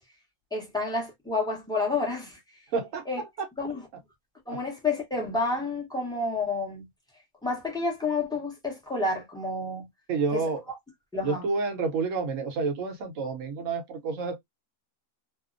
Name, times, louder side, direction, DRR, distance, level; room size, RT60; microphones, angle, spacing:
voice 1, 0.5-2.4 3.1-3.2 3.6-3.9 4.5-6.9 7.4-9.9 10.3-10.4 11.1-11.5, left 3 dB, 5° left, 0.6 m, -29 dB
voice 2, 2.7-3.5 10.1-10.6 11.2-14.4, right 4 dB, 65° right, 1.1 m, -29 dB
2.8 x 2.0 x 2.4 m
omnidirectional pair, 1.5 m